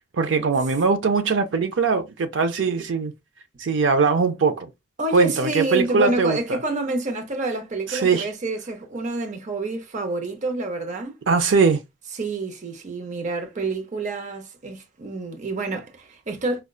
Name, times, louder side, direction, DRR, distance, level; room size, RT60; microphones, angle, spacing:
voice 1, 0.2-3.1 3.6-4.7 5.1-6.6 7.9-8.3 11.3-11.8, right 4 dB, 80° right, 0.5 m, -21 dB
voice 2, 5.0-11.2 12.1-16.6, right 2 dB, 40° right, 0.7 m, -28 dB
4.9 x 2.2 x 2.3 m
head